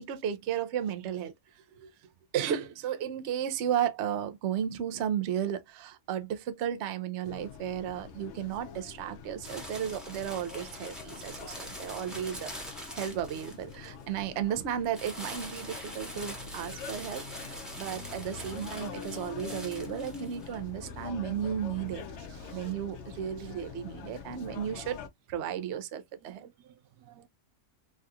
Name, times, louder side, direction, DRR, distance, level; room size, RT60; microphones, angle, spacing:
voice 1, 0.0-1.9 2.3-12.5 12.9-22.0 22.5-25.0 25.3-26.5, right 9 dB, 70° right, 0.6 m, -34 dB
sound 1, 7.2-25.1, left 6 dB, 75° left, 0.6 m, -45 dB
sound 2, 9.4-14.0 14.9-20.5, equal, ahead, 0.8 m, -44 dB
voice 2, 22.2-22.7 23.4-23.5 26.2-27.3, right 9 dB, 85° right, 1.2 m, -58 dB
3.4 x 2.4 x 2.6 m
omnidirectional pair, 1.8 m